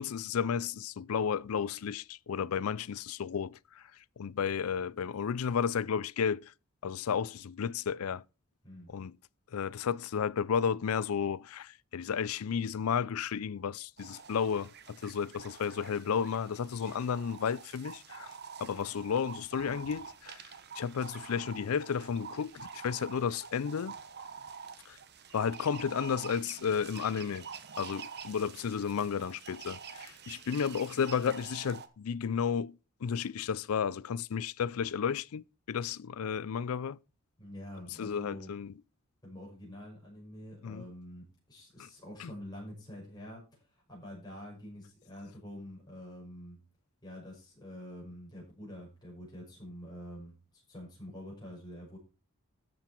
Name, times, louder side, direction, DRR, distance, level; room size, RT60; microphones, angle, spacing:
voice 1, 0.0-3.9 4.2-6.5 6.8-8.2 8.9-9.1 9.5-18.3 18.6-23.9 24.9-25.0 25.3-27.5 27.8-37.0 38.0-38.7 40.6-40.8 41.8-41.9 42.2-42.3, left 7 dB, 80° left, 0.4 m, -33 dB
voice 2, 8.6-9.0 37.4-38.5 39.2-46.6 47.0-52.0, equal, 20° left, 6.0 m, -47 dB
Buffles-Grognement+amb oiseaux, 14.0-31.9, right 6 dB, 50° right, 1.1 m, -47 dB
13.0 x 7.8 x 4.4 m
head